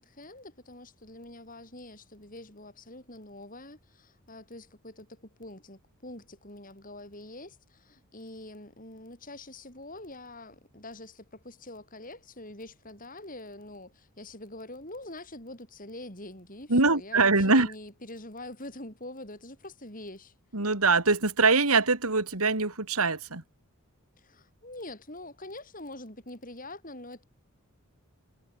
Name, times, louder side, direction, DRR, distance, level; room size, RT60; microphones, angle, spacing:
voice 1, 0.0-20.3 24.2-27.2, left 1 dB, 35° left, 8.0 m, -45 dB
voice 2, 16.7-17.7 20.5-23.4, right 3 dB, 80° right, 3.1 m, -23 dB
head